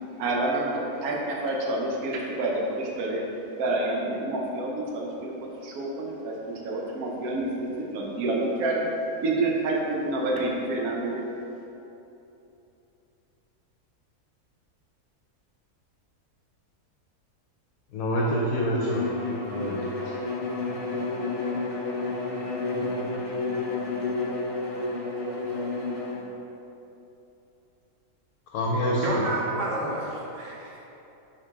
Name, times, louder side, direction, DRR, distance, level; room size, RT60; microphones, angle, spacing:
voice 1, 0.2-3.2 3.6-5.3 5.6-6.3 6.6-8.9 9.2-11.2, right 2 dB, 70° right, -2 dB, 1.3 m, -28 dB
voice 2, 17.9-19.1 19.4-19.9 28.5-29.2, equal, 70° left, -4 dB, 1.1 m, -26 dB
Bowed string instrument, 18.8-26.3, left 3 dB, 55° left, 0.3 m, -30 dB
voice 3, 29.0-30.9, right 2 dB, 55° right, -4 dB, 1.3 m, -30 dB
6.3 x 4.4 x 3.5 m, 2.9 s
omnidirectional pair, 1.6 m